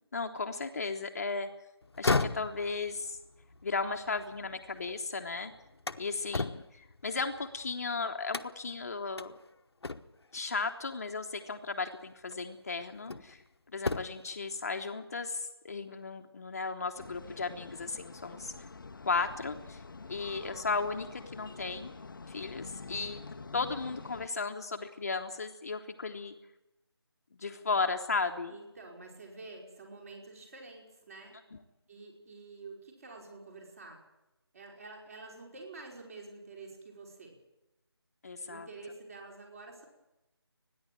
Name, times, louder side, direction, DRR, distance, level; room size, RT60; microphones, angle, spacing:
voice 1, 0.1-1.5 2.0-3.2 3.6-5.5 6.0-9.3 10.3-13.4 13.7-18.5 19.0-19.8 20.1-21.9 22.3-23.2 23.5-26.4 27.4-28.6 31.5-31.6 38.2-38.7, left 4 dB, 35° left, 5 dB, 1.0 m, -35 dB
sound 1, 1.8-5.0 5.4-7.7 8.3-8.8 9.2-9.3 9.8-10.3 11.6-11.7 12.3-13.4 13.7-14.3, left 3 dB, 70° left, 1.0 m, -35 dB
sound 2, 17.0-24.3, left 4 dB, 50° left, 0.7 m, -47 dB
voice 2, 28.5-31.4 31.9-34.0 34.5-37.4 38.4-39.9, right 3 dB, 35° right, 1 dB, 5.3 m, -48 dB
29.0 x 10.5 x 8.9 m, 0.96 s
figure-of-eight pair, 165°, 14 cm